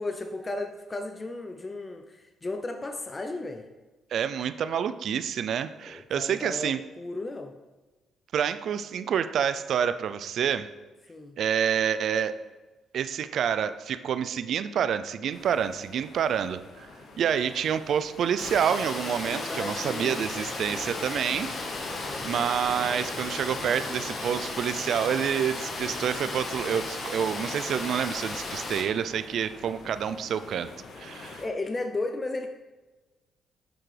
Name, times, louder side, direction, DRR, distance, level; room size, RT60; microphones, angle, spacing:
voice 1, 0.0-3.7 5.9-7.5 11.1-11.4 19.3-20.3 21.9-22.3 31.2-32.5, left 2 dB, 25° left, 6 dB, 0.5 m, -35 dB
voice 2, 4.1-6.8 8.3-10.7 11.4-12.3 12.9-16.9 17.2-21.5 22.2-30.7 31.0-31.4, right 8 dB, 65° right, 13 dB, 0.3 m, -28 dB
sound 1, 15.3-31.5, left 3 dB, 65° left, 0.9 m, -46 dB
Water, 18.4-28.8, left 3 dB, 45° left, 1.3 m, -35 dB
6.8 x 5.9 x 3.3 m, 1.2 s
cardioid pair, 90°, 0 cm